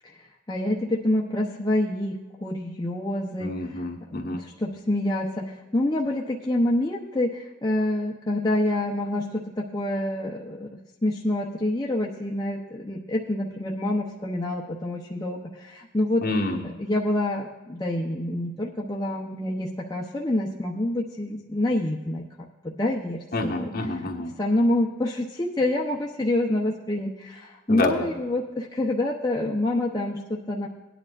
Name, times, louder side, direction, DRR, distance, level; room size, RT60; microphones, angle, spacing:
voice 1, 0.5-3.8 4.3-10.7 11.0-16.2 16.8-22.2 22.6-23.7 24.4-30.7, left 1 dB, 20° left, -3 dB, 0.7 m, -27 dB
voice 2, 3.4-4.4 16.2-16.7 23.3-24.3 27.7-28.1, left 2 dB, 50° left, 0 dB, 1.4 m, -27 dB
17.5 x 10.0 x 2.5 m, 1.2 s
head